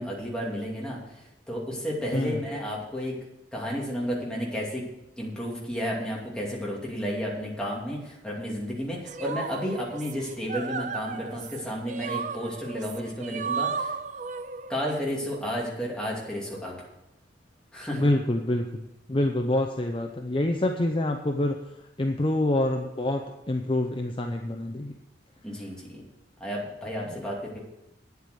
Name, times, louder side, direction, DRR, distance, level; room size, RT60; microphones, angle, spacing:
voice 1, 0.0-3.2 3.5-4.8 5.2-13.9 14.7-16.9 17.7-18.0 25.4-26.0 26.4-27.6, equal, 5° left, -4 dB, 2.6 m, -32 dB
voice 2, 2.1-2.5 17.9-21.6 22.0-24.9 27.1-27.2, left 1 dB, 30° left, 4 dB, 0.6 m, -26 dB
sound 1, 9.1-15.0, right 6 dB, 40° right, 0.5 m, -34 dB
9.3 x 8.2 x 6.8 m, 0.90 s
head